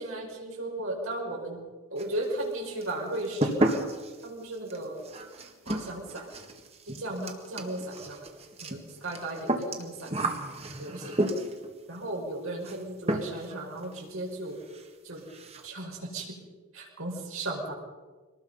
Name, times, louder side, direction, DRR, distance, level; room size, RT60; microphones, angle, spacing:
voice 1, 0.0-1.6 1.9-3.8 4.2-5.0 5.7-6.3 6.8-8.3 8.6-10.1 10.8-11.2 11.9-14.6 15.0-15.2 15.6-16.3 16.7-17.7, right 1 dB, 75° right, -2 dB, 5.6 m, -35 dB
sound 1, 2.0-2.5 2.8-11.7 12.6-12.8 13.1-13.6 13.8-13.9 14.3-14.4 14.7-14.9 15.2-15.7, right 1 dB, 30° right, 1.8 m, -32 dB
25.0 x 19.5 x 5.6 m, 1.3 s
head